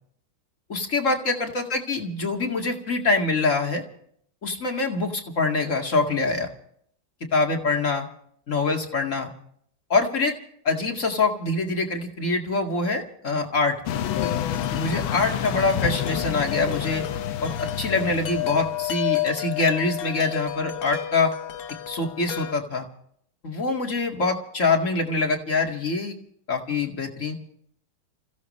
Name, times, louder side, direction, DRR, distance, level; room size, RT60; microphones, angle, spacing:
voice 1, 0.7-3.8 4.4-6.5 7.3-8.1 8.5-9.3 9.9-10.3 10.6-13.8 14.7-17.0 17.4-21.3 21.9-22.8 23.4-26.2 26.5-27.3, left 3 dB, 40° left, 3 dB, 2.4 m, -24 dB
sound 1, 13.9-18.9, left 9 dB, 85° left, 1.7 m, -29 dB
Wind chime, 13.9-22.5, left 13 dB, 55° left, 1.2 m, -32 dB
28.5 x 15.5 x 3.2 m, 0.66 s
omnidirectional pair, 2.2 m